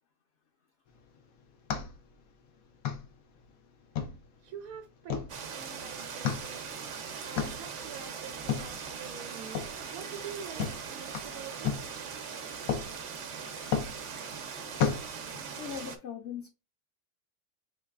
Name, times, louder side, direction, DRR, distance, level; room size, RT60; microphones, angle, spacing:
sound 1, 0.9-15.8, left 7 dB, 85° left, 1.1 m, -37 dB
voice 1, 4.4-11.7, right 7 dB, 90° right, 1.0 m, -46 dB
sound 2, 5.3-16.0, right 6 dB, 60° right, 1.0 m, -40 dB
voice 2, 15.6-16.5, left 8 dB, 60° left, 0.9 m, -40 dB
5.8 x 3.1 x 2.3 m
omnidirectional pair, 1.4 m